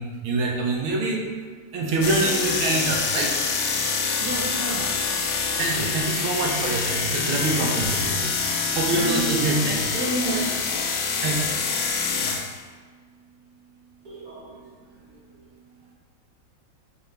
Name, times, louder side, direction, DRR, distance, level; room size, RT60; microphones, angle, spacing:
voice 1, 0.0-1.3 1.7-3.4 5.6-8.3 8.7-9.8 11.2-11.5 12.2-12.4, right 3 dB, 85° right, -1 dB, 1.6 m, -25 dB
sound 1, 2.0-12.6, left 5 dB, 75° left, 1.3 m, -26 dB
voice 2, 4.2-5.3 9.0-10.7 14.0-14.6 15.0-15.4, right 1 dB, 50° right, -6 dB, 1.4 m, -32 dB
4.1 x 3.3 x 3.2 m, 1.5 s
omnidirectional pair, 2.3 m